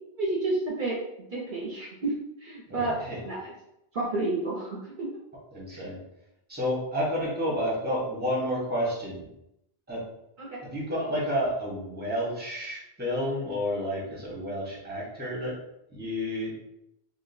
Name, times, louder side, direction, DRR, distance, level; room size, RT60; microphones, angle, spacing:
voice 1, 0.1-1.0 1.3-2.1 2.4-3.0 3.2-3.5 3.9-5.1 5.7-5.9 10.4-10.6, right 2 dB, 55° right, -4 dB, 0.8 m, -30 dB
voice 2, 2.7-3.3 5.5-6.0 6.5-9.3 9.9-10.0 10.6-15.6 15.9-16.5, equal, 10° right, -5 dB, 1.0 m, -30 dB
3.8 x 2.5 x 2.6 m, 0.83 s
omnidirectional pair, 1.1 m